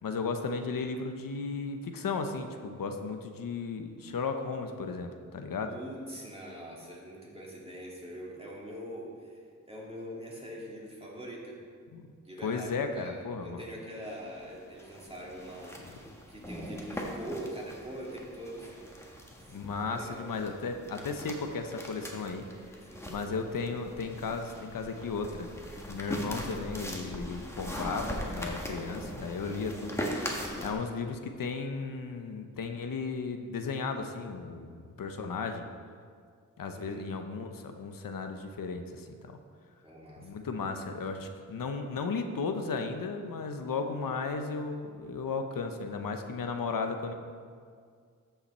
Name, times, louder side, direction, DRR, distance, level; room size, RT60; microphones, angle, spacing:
voice 1, 0.0-5.7 11.9-12.1 12.4-13.6 19.5-22.4 23.1-25.5 25.9-30.0 30.6-35.6 36.6-39.3 40.2-47.1, left 4 dB, 90° left, 6 dB, 0.8 m, -35 dB
voice 2, 5.7-11.6 12.2-18.9 19.9-20.3 22.8-23.2 36.7-37.1 39.8-40.3, equal, 20° right, -4 dB, 2.5 m, -43 dB
sound 1, 14.0-30.7, equal, 10° left, 1.4 m, -41 dB
13.5 x 5.8 x 4.3 m, 2.1 s
wide cardioid pair, 80°, 33 cm